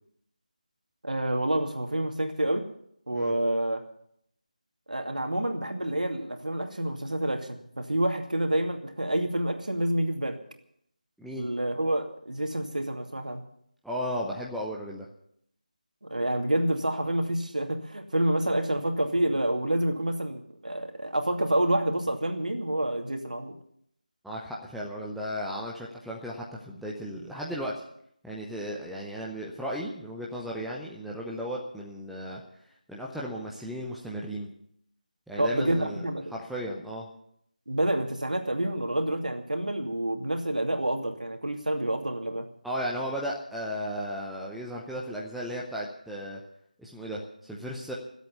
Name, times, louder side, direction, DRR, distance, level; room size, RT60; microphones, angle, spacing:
voice 1, 1.0-2.6 3.1-3.8 4.9-10.4 11.3-13.4 16.1-23.5 35.4-36.4 37.7-42.5, right 1 dB, 70° right, 4 dB, 2.5 m, -28 dB
voice 2, 13.8-15.1 24.2-27.7 28.2-32.4 32.9-34.5 35.3-36.0 36.3-37.1 42.6-46.4 46.8-47.9, equal, ahead, -4 dB, 0.7 m, -35 dB
23.0 x 8.2 x 7.0 m, 0.71 s
figure-of-eight pair, 165°, 4 cm